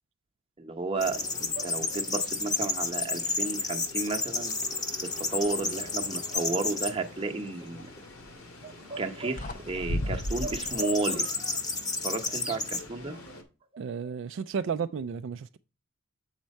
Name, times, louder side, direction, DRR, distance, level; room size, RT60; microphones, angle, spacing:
voice 1, 0.6-4.5 5.2-7.9 8.6-11.3 12.0-13.2, right 3 dB, 25° right, 0.8 m, -32 dB
sound 1, 0.9-13.4, left 2 dB, 80° left, 2.0 m, -48 dB
sound 2, 1.0-6.9 7.5-8.0 10.2-12.8, left 3 dB, 20° left, 0.8 m, -31 dB
sound 3, 2.4-2.7 3.0-3.6 4.1-5.9 8.1-8.4 9.1-9.2 9.4-10.8, left 1 dB, 40° left, 0.5 m, -36 dB
voice 2, 13.8-15.6, right 6 dB, 60° right, 0.3 m, -33 dB
7.3 x 4.5 x 5.2 m
head